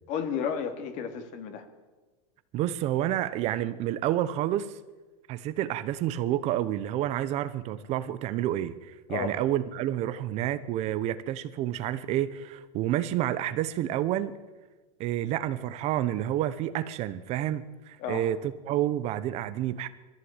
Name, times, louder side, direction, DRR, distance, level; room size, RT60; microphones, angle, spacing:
voice 1, 0.1-1.6 9.1-9.4 18.0-18.3, left 7 dB, 45° left, 2.6 m, -32 dB
voice 2, 2.5-4.8 5.3-14.4 15.0-19.9, right 12 dB, 40° right, 0.9 m, -29 dB
21.0 x 15.0 x 9.0 m
supercardioid pair, 150°, 17 cm